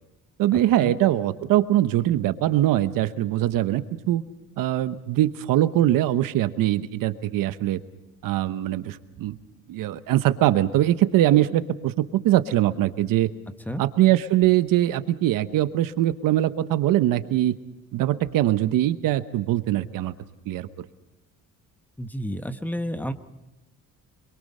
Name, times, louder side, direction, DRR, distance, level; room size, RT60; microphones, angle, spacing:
voice 1, 0.4-4.2 4.6-7.8 8.2-9.4 9.7-13.3 13.8-17.5 17.9-20.1 20.5-20.9, right 13 dB, 80° right, 12 dB, 1.1 m, -22 dB
voice 2, 22.0-23.1, equal, 5° left, 9 dB, 1.2 m, -30 dB
26.0 x 23.0 x 5.5 m, 0.96 s
cardioid pair, 115°, 33 cm